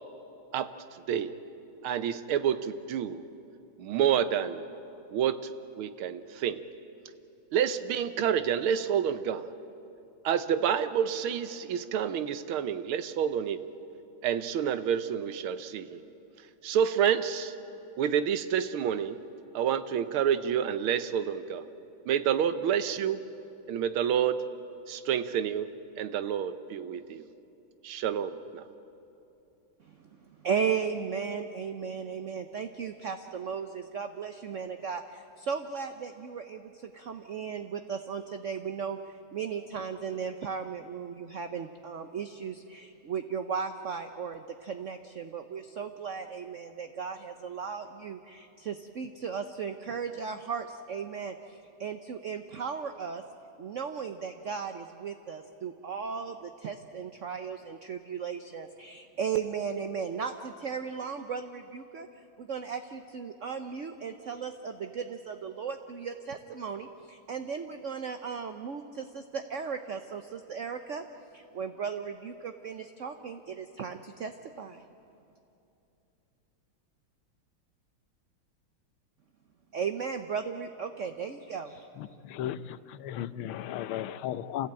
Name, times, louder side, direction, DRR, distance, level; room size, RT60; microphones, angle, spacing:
voice 1, 1.8-3.3 3.8-4.7 5.1-6.6 7.5-9.4 10.3-13.7 14.2-16.0 16.6-17.5 18.0-19.2 19.6-21.6 22.1-23.2 23.7-24.4 24.9-25.7 26.0-27.2 27.8-28.6, right 8 dB, 85° right, 12 dB, 1.7 m, -28 dB
voice 2, 29.8-39.0 39.3-53.2 53.6-62.1 62.4-71.0 71.3-74.3 74.6-74.8 79.7-81.9, right 6 dB, 60° right, 7 dB, 0.8 m, -36 dB
voice 3, 82.3-82.6 83.0-84.7, left 11 dB, 85° left, 14 dB, 1.6 m, -34 dB
27.5 x 16.0 x 8.9 m, 2.8 s
omnidirectional pair, 2.3 m